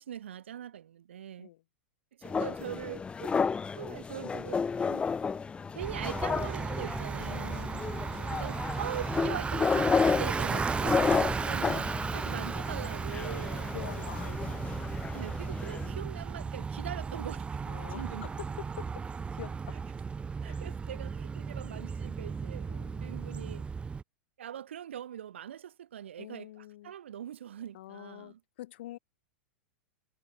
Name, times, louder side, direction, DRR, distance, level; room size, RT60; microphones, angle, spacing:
voice 1, 0.0-1.5 2.2-3.4 3.7-5.0 5.7-7.7 8.3-13.7 15.1-17.6 17.9-18.3 20.4-22.7 23.0-23.6 24.4-28.4, right 10 dB, 75° right, 5.1 m, -42 dB
sound 1, 2.2-15.9, left 5 dB, 15° left, 1.4 m, -32 dB
Bicycle, 5.8-24.0, right 5 dB, 15° right, 1.9 m, -35 dB
voice 2, 7.2-8.4 10.5-10.7 11.5-11.9 13.1-14.7 15.8-16.1 17.7-19.1 19.3-19.8 20.5-20.6 22.7-23.1 26.2-26.9 27.7-29.0, left 15 dB, 65° left, 2.0 m, -47 dB
hypercardioid pair, 105°, 6 cm